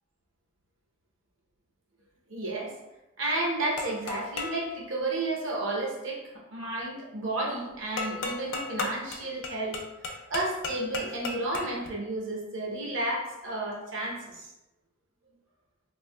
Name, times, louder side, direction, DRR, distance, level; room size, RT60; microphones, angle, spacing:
voice 1, 2.3-2.7 3.2-6.2 6.5-9.8 10.3-14.5, right 2 dB, 70° right, -3 dB, 0.8 m, -32 dB
sound 1, 3.8-4.7 8.0-11.9, left 3 dB, 65° left, 0.4 m, -35 dB
3.3 x 2.6 x 2.2 m, 0.98 s
head